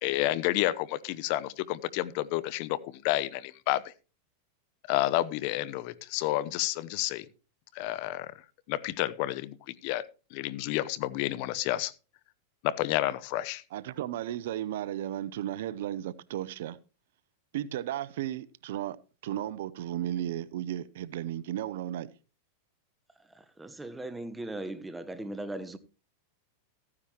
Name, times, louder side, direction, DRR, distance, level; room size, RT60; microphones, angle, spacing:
voice 1, 0.0-3.9 4.9-7.2 7.7-8.3 8.7-10.0 10.3-11.9 12.6-13.6, left 15 dB, 55° left, 0.8 m, -30 dB
voice 2, 13.7-16.8 17.5-19.0 19.2-22.1, right 12 dB, 70° right, 0.7 m, -34 dB
voice 3, 23.6-25.8, right 1 dB, 10° right, 1.1 m, -38 dB
14.5 x 9.8 x 3.0 m
hypercardioid pair, 115°, 0 cm